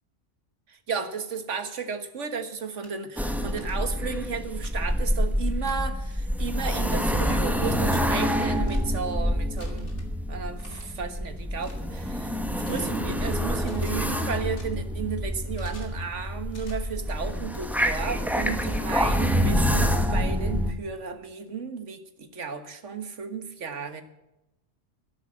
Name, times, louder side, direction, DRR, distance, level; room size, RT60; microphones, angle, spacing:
voice 1, 0.7-9.9 10.3-12.4 12.7-24.0, right 6 dB, 80° right, 9 dB, 1.8 m, -34 dB
sound 1, 2.8-2.9 3.6-3.7 4.6-4.7 5.6-5.8 6.6-6.8 7.6-8.0 8.6-8.8 9.6-10.1 10.6-10.9 11.6-11.8 12.6-12.9 13.6-13.9 14.6-14.7 15.5-15.9 16.5-16.7 17.5-17.6 18.6-18.8 19.6-19.7, left 2 dB, 70° left, 3.0 m, -49 dB
sound 2, 3.2-20.7, equal, ahead, 1.3 m, -27 dB
13.5 x 11.0 x 7.7 m, 0.92 s
omnidirectional pair, 1.2 m